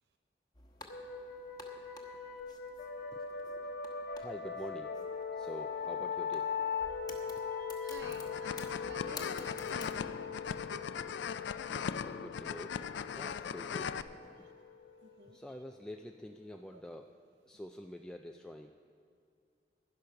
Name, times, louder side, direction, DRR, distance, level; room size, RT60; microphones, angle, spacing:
sound 1, 0.5-10.0, left 3 dB, 25° left, 1.2 m, -54 dB
sound 2, 0.9-16.2, left 6 dB, 65° left, 1.0 m, -41 dB
voice 1, 3.1-3.7 4.1-7.0 11.8-14.0 14.2-14.6 15.3-17.1 17.5-18.7, equal, 5° left, 3 dB, 0.3 m, -48 dB
voice 2, 7.4-10.9 15.0-15.4 16.7-16.8, right 3 dB, 70° right, 6 dB, 0.6 m, -53 dB
sound 3, 8.0-14.0, left 7 dB, 80° left, 0.4 m, -39 dB
11.5 x 10.5 x 5.7 m, 2.3 s
head